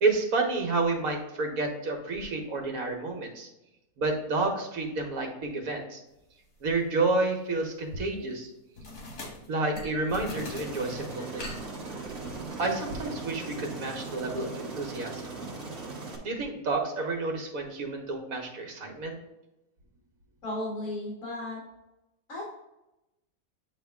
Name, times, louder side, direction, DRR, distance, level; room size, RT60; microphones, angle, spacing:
voice 1, 0.0-3.5 4.0-6.0 6.6-8.5 9.5-11.5 12.6-15.3 16.2-19.1, right 3 dB, 65° right, 2 dB, 1.6 m, -30 dB
sound 1, 6.7-6.9 8.8-12.5, left 2 dB, 75° left, 1.9 m, -42 dB
Aircraft, 10.4-16.2, right 3 dB, 45° right, 1.4 m, -39 dB
voice 2, 20.4-21.6 22.3-22.4, left 1 dB, 60° left, -6 dB, 2.0 m, -34 dB
8.3 x 3.4 x 3.5 m, 0.91 s
omnidirectional pair, 1.6 m